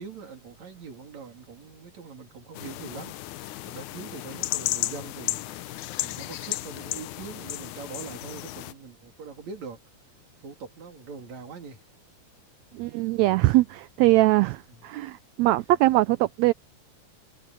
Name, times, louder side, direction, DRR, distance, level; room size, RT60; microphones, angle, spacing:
voice 1, 0.0-3.1 3.7-9.8 10.4-11.8 12.7-12.8 14.7-14.8, right 5 dB, 60° right, 4.1 m, -42 dB
sound 1, 2.6-8.7, left 16 dB, 80° left, 2.1 m, -34 dB
voice 2, 12.8-16.5, right 18 dB, 80° right, 1.6 m, -22 dB
omnidirectional pair, 3.6 m